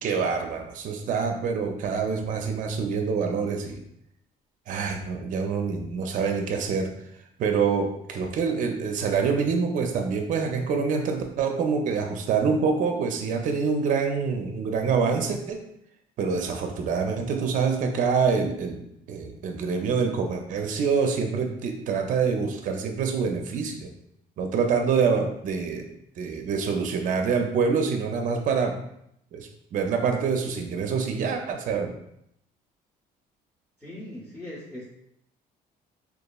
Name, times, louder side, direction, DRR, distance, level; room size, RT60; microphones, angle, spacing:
voice 1, 0.0-3.8 4.7-6.9 7.4-15.6 16.2-23.9 24.4-25.9 26.2-28.8 29.3-31.9, right 5 dB, 50° right, 4 dB, 0.4 m, -26 dB
voice 2, 33.8-34.9, left 1 dB, 5° left, -7 dB, 0.6 m, -39 dB
2.9 x 2.3 x 2.2 m, 0.75 s
cardioid pair, 110°, 17 cm